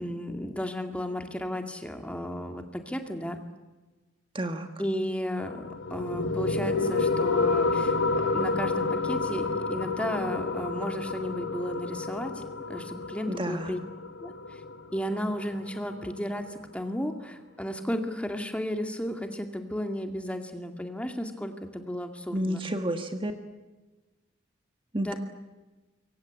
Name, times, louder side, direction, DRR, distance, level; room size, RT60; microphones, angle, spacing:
voice 1, 0.0-3.4 4.8-5.6 5.9-13.8 14.2-14.6 14.9-22.6 25.0-25.1, equal, 5° left, 5 dB, 2.2 m, -34 dB
voice 2, 4.3-4.7 13.3-13.7 22.3-23.3 24.9-25.1, right 1 dB, 25° right, 6 dB, 1.7 m, -30 dB
sound 1, 5.4-16.4, left 3 dB, 90° left, 1.7 m, -30 dB
26.5 x 23.5 x 8.3 m, 1.2 s
head